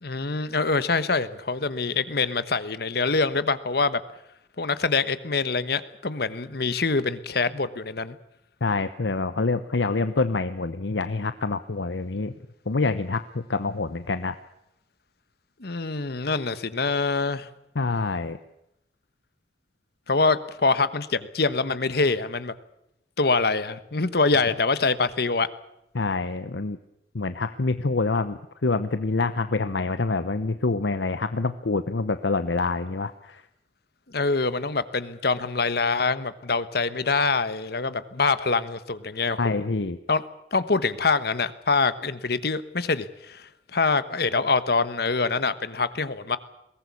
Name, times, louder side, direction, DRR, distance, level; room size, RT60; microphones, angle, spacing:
voice 1, 0.0-4.0 4.6-8.2 15.6-17.5 20.1-22.5 23.2-25.5 34.1-39.7 40.1-40.2 40.5-46.4, left 4 dB, 60° left, 13 dB, 1.2 m, -25 dB
voice 2, 8.6-12.3 12.7-14.4 17.8-18.4 25.9-26.8 27.1-33.4 39.4-40.0, left 3 dB, 90° left, 11 dB, 0.9 m, -26 dB
22.0 x 18.5 x 8.4 m, 0.83 s
head